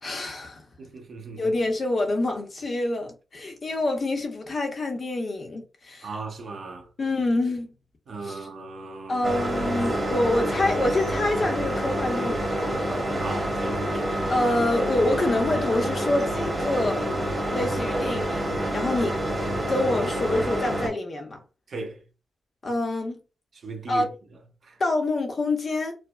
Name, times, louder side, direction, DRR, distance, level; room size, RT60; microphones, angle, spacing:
voice 1, 0.0-0.6 1.3-6.1 7.0-7.7 8.2-8.5 9.1-13.0 14.3-17.1 17.5-19.2 19.7-21.4 22.6-23.2 23.9-24.1 24.8-26.0, left 2 dB, 40° left, 0.8 m, -26 dB
voice 2, 0.8-1.5 6.0-6.9 8.1-9.3 13.2-13.8 20.0-20.1 21.7-22.0 23.6-24.1 24.6-24.8, right 3 dB, 50° right, 0.8 m, -37 dB
sound 1, 9.2-20.9, right 1 dB, 10° right, 1.2 m, -27 dB
4.7 x 2.1 x 2.3 m
wide cardioid pair, 165°, 0 cm